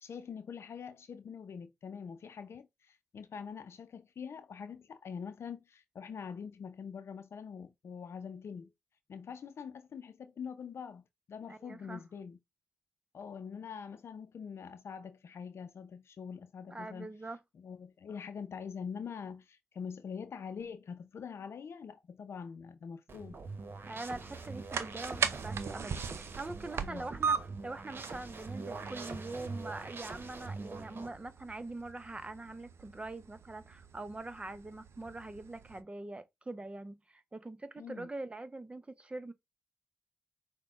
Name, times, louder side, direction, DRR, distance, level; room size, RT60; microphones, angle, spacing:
voice 1, 0.0-8.7 9.1-12.4 13.1-17.1 17.6-23.4 26.8-27.1 37.8-38.1, left 6 dB, 70° left, 0.6 m, -44 dB
voice 2, 11.5-12.0 16.6-17.4 23.9-39.3, right 2 dB, 25° right, 0.8 m, -43 dB
sound 1, 23.1-31.1, right 3 dB, 55° right, 1.0 m, -44 dB
sound 2, 24.1-35.8, right 6 dB, 75° right, 0.5 m, -40 dB
5.9 x 2.3 x 3.6 m
cardioid pair, 60°, 5 cm